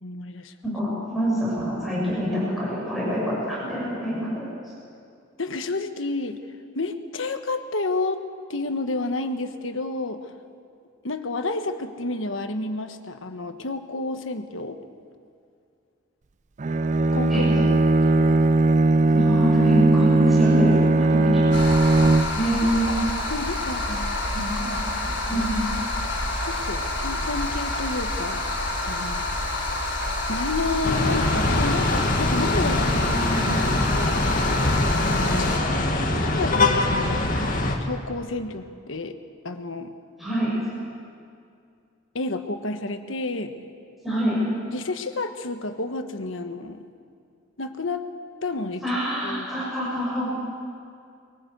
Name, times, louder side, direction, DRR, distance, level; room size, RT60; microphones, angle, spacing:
voice 1, 0.0-0.5 5.4-6.4 6.7-8.2 8.5-10.3 11.0-14.8 17.1-18.4 22.0-22.2 22.6-24.2 25.3-25.5 26.4-28.4 28.8-29.3 30.3-33.1 33.6-34.3 35.0-35.7 36.1-37.3 37.8-39.2 39.4-39.9 42.1-43.5 44.6-46.8 47.6-48.0 48.4-48.8 49.2-49.5, left 2 dB, 85° left, 7 dB, 1.3 m, -30 dB
voice 2, 0.6-4.5 17.3-17.4 19.1-21.6 22.3-22.9 24.3-24.8 25.3-25.5 32.9-33.4 40.2-40.5 44.0-44.4 48.8-50.3, equal, ahead, -7 dB, 6.4 m, -26 dB
Bowed string instrument, 16.6-22.6, right 2 dB, 40° right, 0.4 m, -19 dB
sound 1, 21.5-35.6, left 2 dB, 65° left, 4.1 m, -28 dB
sound 2, 30.8-37.8, left 2 dB, 45° left, 1.9 m, -23 dB
22.5 x 17.5 x 8.1 m, 2.4 s
head